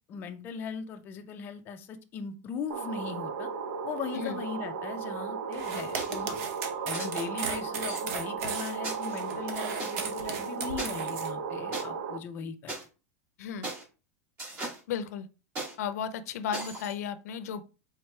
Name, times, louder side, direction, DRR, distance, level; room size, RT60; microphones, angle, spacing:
voice 1, 0.1-3.5 3.8-6.4 6.8-12.7, left 6 dB, 25° left, 5 dB, 0.4 m, -39 dB
sound 1, 2.7-12.2, right 6 dB, 80° right, 0.5 m, -35 dB
sound 2, 5.5-11.3, right 5 dB, 60° right, 0.9 m, -37 dB
sound 3, 6.0-6.3 6.9-7.1 7.9-8.0 8.8-9.9 10.8-10.9 11.7-11.8 12.7-12.8 13.6-13.8 14.4-14.8 15.6-15.7 16.5-16.9, right 2 dB, 30° right, 2.3 m, -37 dB
voice 2, 13.4-13.7 14.9-15.3 15.8-17.6, left 7 dB, 80° left, 12 dB, 0.5 m, -34 dB
4.5 x 3.6 x 3.2 m, 0.33 s
supercardioid pair, 165°, 8 cm